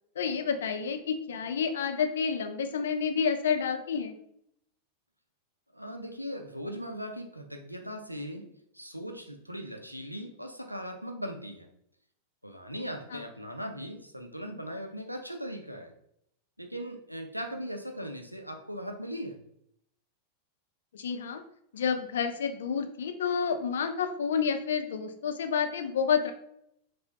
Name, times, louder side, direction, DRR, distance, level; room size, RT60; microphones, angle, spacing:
voice 1, 0.2-4.2 13.1-13.2 20.9-21.4 21.7-26.3, left 6 dB, 65° left, 7 dB, 0.4 m, -29 dB
voice 2, 5.7-11.7 12.4-15.9 16.6-19.4, equal, 90° right, 3 dB, 0.4 m, -39 dB
4.8 x 2.0 x 2.8 m, 0.73 s
figure-of-eight pair, 90°, 0 cm